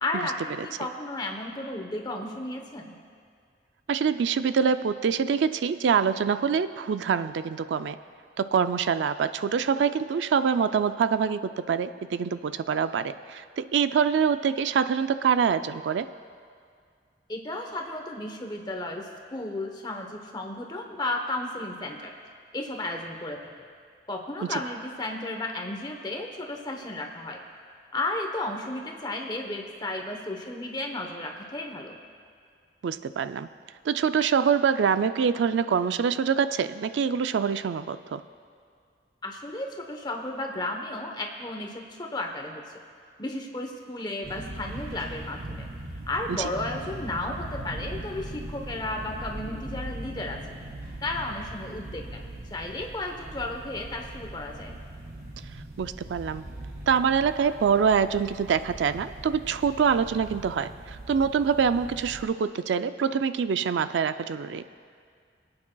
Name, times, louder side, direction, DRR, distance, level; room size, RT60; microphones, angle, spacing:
voice 1, 0.0-3.0 17.3-22.1 22.5-23.5 24.1-27.4 27.9-32.0 39.2-42.6 43.2-45.7 46.1-50.4 51.0-54.7, left 2 dB, 25° left, 3 dB, 0.9 m, -33 dB
voice 2, 3.9-8.0 8.4-16.1 24.5-24.6 32.8-33.5 33.8-38.2 46.3-46.5 55.8-56.4 56.9-64.6, right 6 dB, 85° right, 12 dB, 0.3 m, -25 dB
sound 1, 44.2-62.2, right 1 dB, 55° right, 1.6 m, -40 dB
23.0 x 8.8 x 2.3 m, 2.2 s
head